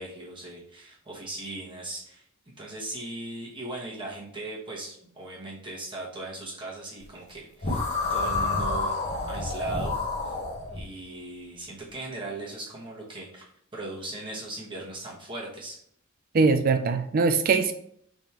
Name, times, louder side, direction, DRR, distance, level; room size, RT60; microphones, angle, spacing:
voice 1, 0.0-2.2 2.6-8.9 9.2-10.4 10.7-15.8, right 2 dB, 25° right, -5 dB, 1.3 m, -38 dB
sound 1, 7.6-10.8, left 3 dB, 35° left, 1.0 m, -29 dB
voice 2, 16.3-17.7, right 4 dB, 40° right, 8 dB, 0.4 m, -22 dB
5.0 x 3.6 x 2.9 m, 0.65 s
head